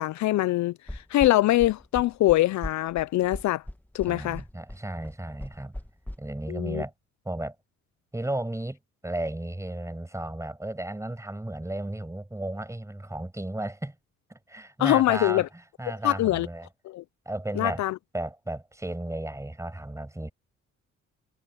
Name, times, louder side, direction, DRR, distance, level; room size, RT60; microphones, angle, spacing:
voice 1, 0.0-3.6 3.9-4.4 6.5-6.8 14.8-15.5 16.0-16.5 16.8-17.0 17.6-18.0, left 15 dB, 70° left, 0.5 m, -23 dB
sound 1, 0.9-6.2, left 1 dB, 5° left, 2.2 m, -38 dB
voice 2, 4.1-5.8 6.2-6.9 7.2-7.5 8.1-8.8 9.0-13.9 14.3-15.5 15.8-16.7 17.2-17.8 18.1-20.3, right 1 dB, 10° right, 7.8 m, -34 dB
cardioid pair, 90°, 30 cm